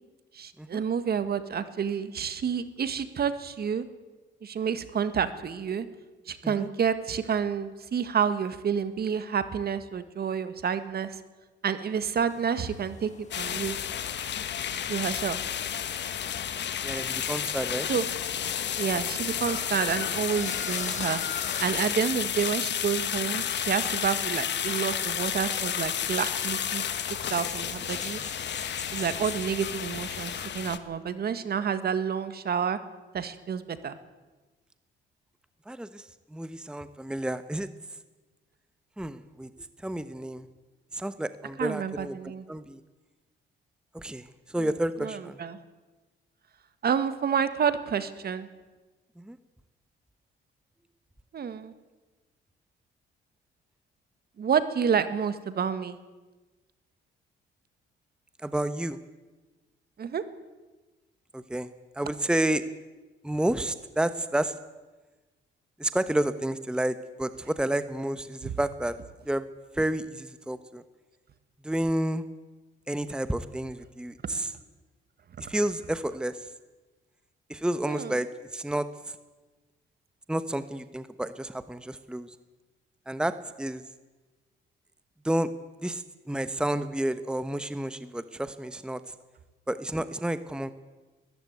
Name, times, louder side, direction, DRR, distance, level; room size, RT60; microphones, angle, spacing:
voice 1, 0.3-3.8 4.4-5.9 6.3-11.2 11.6-13.1 13.4-13.8 14.9-15.4 17.9-18.0 18.8-21.2 21.6-26.8 27.3-28.2 28.9-32.8 33.1-34.0 41.6-42.4 44.6-44.7 45.0-45.6 46.8-48.5 51.3-51.7 54.4-56.0 60.0-60.2 68.4-68.5 77.9-78.1, right 7 dB, 50° right, 12 dB, 1.7 m, -29 dB
sound 1, 12.3-30.5, left 5 dB, 35° left, 1.7 m, -44 dB
sound 2, 13.3-30.8, left 9 dB, 60° left, 1.5 m, -31 dB
voice 2, 16.8-17.9 35.7-37.7 39.0-39.5 39.8-40.5 40.9-42.2 42.5-42.8 43.9-45.4 49.2-49.4 58.4-59.0 61.3-61.7 62.0-62.6 63.2-64.5 65.8-68.9 69.3-69.4 69.7-70.8 71.6-72.2 72.9-74.5 75.5-76.4 77.5-78.3 78.5-78.9 80.3-82.3 83.1-83.8 85.2-85.5 85.8-89.0 89.7-90.7, right 1 dB, 5° right, 12 dB, 1.0 m, -30 dB
21.0 x 14.0 x 9.5 m, 1.2 s
cardioid pair, 90°, 20 cm